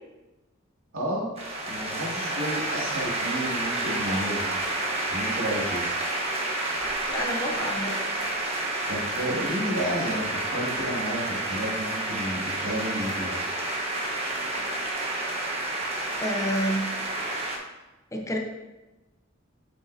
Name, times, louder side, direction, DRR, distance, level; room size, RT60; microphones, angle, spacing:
voice 1, 0.9-1.3 1.6-4.6 5.1-5.8 8.9-13.4, equal, 85° right, -5 dB, 2.3 m, -31 dB
sound 1, 1.4-17.6, right 2 dB, 30° right, 1.1 m, -30 dB
voice 2, 7.1-7.9 16.2-16.9 18.1-18.4, equal, 15° left, 1 dB, 0.7 m, -28 dB
7.2 x 6.6 x 2.7 m, 1.1 s
head